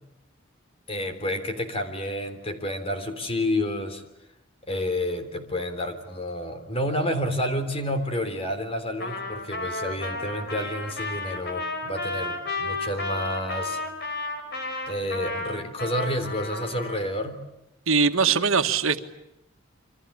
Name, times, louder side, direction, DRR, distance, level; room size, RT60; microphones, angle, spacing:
voice 1, 0.9-4.0 4.7-13.8 14.9-17.4, left 1 dB, 30° left, 8 dB, 3.6 m, -29 dB
Trumpet, 9.0-17.0, left 2 dB, 55° left, 5.6 m, -32 dB
voice 2, 17.9-19.0, right 5 dB, 90° right, 8 dB, 1.6 m, -21 dB
28.0 x 25.0 x 8.6 m, 0.85 s
head